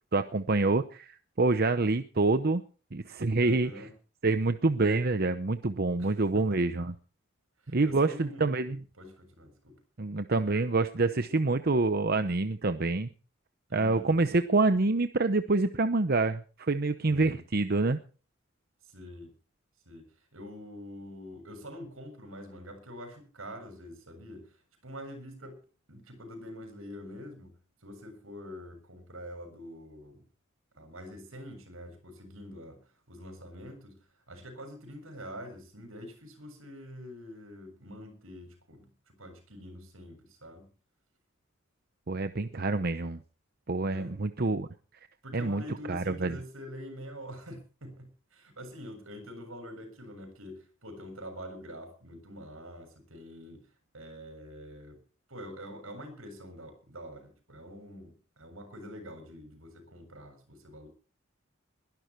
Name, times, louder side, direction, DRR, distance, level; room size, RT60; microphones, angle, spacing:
voice 1, 0.1-2.6 2.9-3.7 4.2-6.9 7.7-8.8 10.0-13.1 13.7-18.0 42.1-43.2 43.7-44.7 45.3-46.4, right 3 dB, 50° right, 10 dB, 0.8 m, -27 dB
voice 2, 3.4-3.9 6.0-6.5 7.6-8.6 9.0-9.8 13.7-14.1 17.1-17.4 18.9-19.3 19.9-20.0 20.3-24.5 24.8-25.6 25.9-27.5 27.8-30.2 30.8-32.8 33.1-34.0 34.3-40.7 43.9-44.2 45.2-53.6 53.9-55.0 55.3-60.9, equal, 80° right, 7 dB, 7.2 m, -45 dB
21.5 x 12.0 x 4.6 m, 0.39 s
head